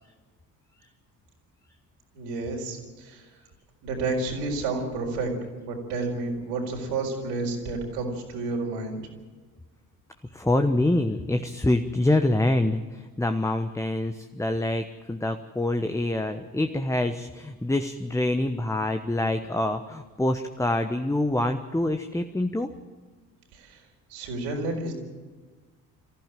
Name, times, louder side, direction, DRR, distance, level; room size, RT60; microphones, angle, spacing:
voice 1, 2.1-3.3 3.8-5.3 5.6-9.0 23.5-23.8 24.1-25.0, right 3 dB, 65° right, 1 dB, 4.6 m, -30 dB
voice 2, 10.3-22.7, left 1 dB, 5° left, 6 dB, 1.2 m, -26 dB
24.5 x 15.0 x 7.6 m, 1.4 s
figure-of-eight pair, 50°, 47 cm